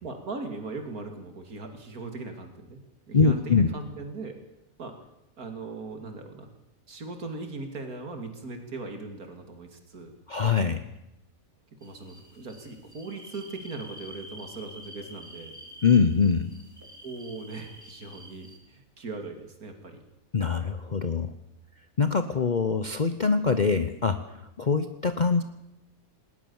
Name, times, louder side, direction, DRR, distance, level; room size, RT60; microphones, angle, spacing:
voice 1, 0.0-2.8 3.1-4.4 4.8-4.9 5.4-6.5 6.9-10.2 11.8-15.6 17.0-20.0, right 3 dB, 85° right, 5 dB, 3.0 m, -39 dB
voice 2, 3.1-3.7 10.3-10.8 15.8-16.5 20.3-21.3 22.0-24.2 24.6-25.4, left 5 dB, 35° left, 9 dB, 0.9 m, -23 dB
sound 1, 11.8-18.6, equal, 10° right, 3.7 m, -48 dB
19.5 x 19.0 x 7.2 m, 0.87 s
omnidirectional pair, 1.5 m